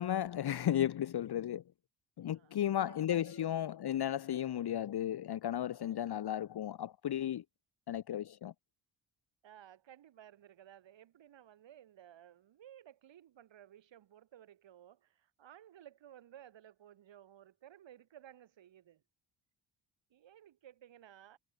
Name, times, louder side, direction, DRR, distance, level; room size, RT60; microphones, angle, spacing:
voice 1, 0.0-1.6 2.2-7.4 7.9-8.5, left 11 dB, 60° left, 1.2 m, -34 dB
voice 2, 2.3-3.5 3.8-4.0 9.4-19.0 20.1-21.4, right 11 dB, 80° right, 6.1 m, -57 dB
cardioid pair, 80°, 44 cm